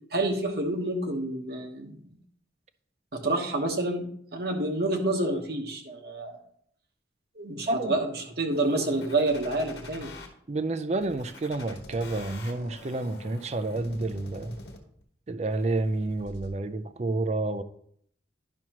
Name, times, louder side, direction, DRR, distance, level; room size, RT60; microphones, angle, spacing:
voice 1, 0.1-2.0 3.1-6.4 7.4-10.1, right 2 dB, 55° right, 2 dB, 1.2 m, -28 dB
voice 2, 7.7-8.0 10.5-14.6 15.3-17.6, right 2 dB, 35° right, 11 dB, 0.4 m, -29 dB
sound 1, 8.5-10.3 11.0-15.0 15.5-16.5, left 2 dB, 60° left, 1.2 m, -45 dB
11.0 x 6.0 x 2.9 m, 0.66 s
head